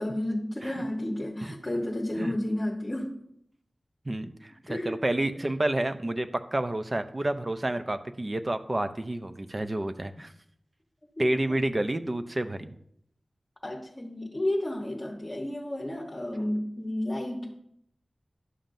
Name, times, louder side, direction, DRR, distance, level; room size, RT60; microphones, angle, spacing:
voice 1, 0.0-3.2 4.7-5.0 11.2-11.3 13.6-17.6, left 1 dB, 30° left, -1 dB, 1.1 m, -31 dB
voice 2, 4.1-10.3 11.2-12.7, right 1 dB, 35° right, 9 dB, 0.6 m, -29 dB
11.0 x 7.2 x 2.6 m, 0.72 s
wide cardioid pair, 80°, 0 cm